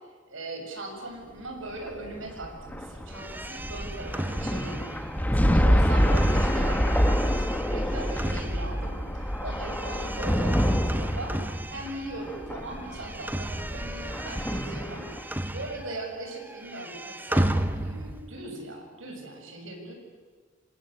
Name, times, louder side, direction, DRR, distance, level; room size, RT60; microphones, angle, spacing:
voice 1, 0.3-11.4 11.7-15.1 15.5-19.9, right 2 dB, 80° right, 2 dB, 7.5 m, -39 dB
sound 1, 1.7-15.3, equal, 10° left, 1.5 m, -26 dB
sound 2, 3.1-12.4 12.7-16.1 16.4-18.3, right 1 dB, 10° right, 1.0 m, -34 dB
26.5 x 26.5 x 8.2 m, 1.4 s
head